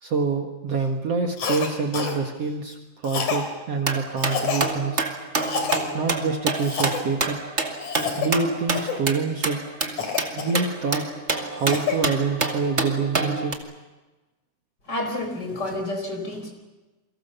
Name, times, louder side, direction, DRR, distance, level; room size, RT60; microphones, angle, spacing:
voice 1, 0.0-5.0 5.9-7.4 8.2-9.6 10.3-11.0 11.4-13.5, right 4 dB, 50° right, 3 dB, 2.5 m, -26 dB
Cough, 1.4-1.7 1.9-2.2 3.0-3.5 4.2-4.7 5.4-5.8 6.5-7.0 7.8-8.3 8.7-9.0 10.0-10.9 11.4-12.0, left 6 dB, 60° left, 4.6 m, -28 dB
sound 1, 3.8-13.5, right 3 dB, 25° right, 1.8 m, -28 dB
voice 2, 14.9-16.5, left 1 dB, 30° left, 4 dB, 5.0 m, -29 dB
28.5 x 24.0 x 6.9 m, 1.1 s
omnidirectional pair, 3.9 m